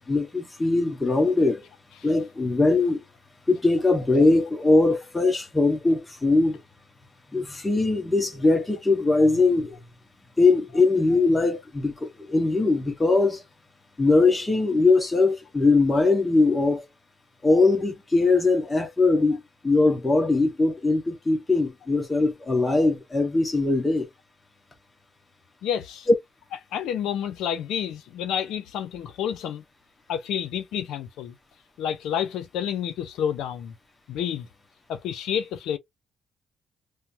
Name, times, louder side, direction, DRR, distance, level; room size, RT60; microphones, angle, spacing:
voice 1, 0.1-1.6 2.0-3.0 3.5-6.6 7.3-9.7 10.4-13.4 14.0-16.8 17.4-24.1, left 3 dB, 20° left, 1.1 m, -21 dB
voice 2, 25.6-26.1 26.7-29.6 30.1-31.3 31.8-33.7 34.1-34.5 34.9-35.8, left 9 dB, 85° left, 0.5 m, -29 dB
3.1 x 2.0 x 2.7 m
cardioid pair, 90°, 0 cm